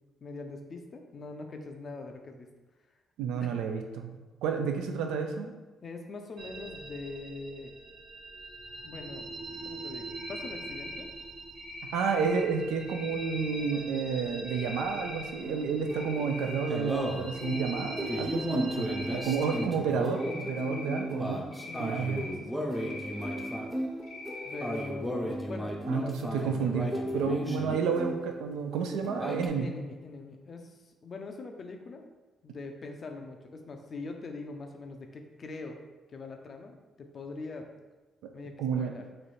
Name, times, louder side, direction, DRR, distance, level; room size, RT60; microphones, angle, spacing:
voice 1, 0.2-2.5 3.4-3.6 5.8-7.7 8.8-9.3 9.6-11.1 20.6-21.3 21.6-23.0 24.4-26.4 29.6-32.1 32.4-35.8 36.1-37.7 38.3-39.0, left 3 dB, 45° left, 5 dB, 0.5 m, -43 dB
voice 2, 3.2-4.1 4.4-5.5 11.9-21.4 21.8-22.2 25.9-26.9 27.1-29.7 38.6-38.9, right 6 dB, 90° right, 4 dB, 0.4 m, -30 dB
sound 1, 6.4-19.7, right 3 dB, 70° right, 0.8 m, -43 dB
Cricket, 10.1-11.0 11.6-12.4 12.9-13.7 14.4-15.3 15.7-16.7 17.0-18.2 18.8-19.6 20.1-21.0 21.5-22.3 22.7-23.6 24.0-24.8, left 3 dB, 85° left, 0.8 m, -43 dB
sound 2, 15.4-28.5 28.8-29.5, equal, ahead, 0.6 m, -35 dB
3.2 x 2.6 x 4.1 m, 1.2 s
cardioid pair, 90°, 0 cm